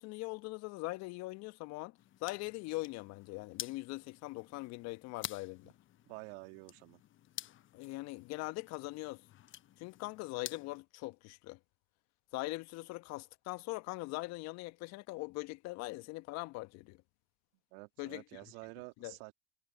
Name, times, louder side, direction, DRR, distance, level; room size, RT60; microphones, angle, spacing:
voice 1, 0.0-5.7 7.7-9.2 9.8-11.6 12.3-17.0 18.0-18.4 19.0-19.1, left 22 dB, 50° left, 1.4 m, -41 dB
sound 1, 2.0-10.8, left 12 dB, 35° left, 1.1 m, -50 dB
voice 2, 6.1-7.0 17.7-19.3, right 30 dB, 60° right, 2.0 m, -49 dB
hypercardioid pair, 80°, 33 cm